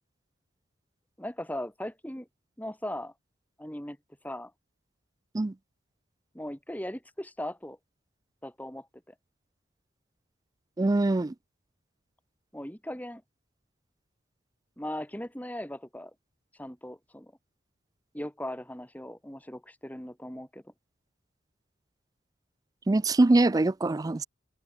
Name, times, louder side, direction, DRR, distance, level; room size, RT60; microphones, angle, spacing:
voice 1, 1.2-2.3 2.6-3.1 3.6-4.0 4.2-4.5 6.3-7.8 8.4-9.1 12.5-13.2 14.8-16.1 16.6-17.3 18.1-20.7, left 1 dB, 10° left, 2.6 m, -38 dB
voice 2, 10.8-11.3 22.9-24.3, right 2 dB, 20° right, 0.3 m, -23 dB
head